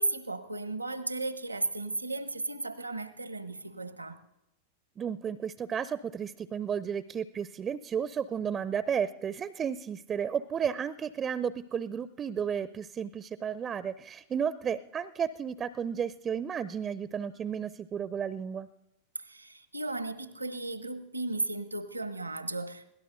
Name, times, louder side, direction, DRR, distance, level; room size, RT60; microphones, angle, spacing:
voice 1, 0.0-4.2 19.2-22.9, right 2 dB, 85° right, 0.9 m, -35 dB
voice 2, 5.0-18.7, right 7 dB, 25° right, 0.5 m, -33 dB
22.0 x 17.0 x 2.6 m
figure-of-eight pair, 90°, 0 cm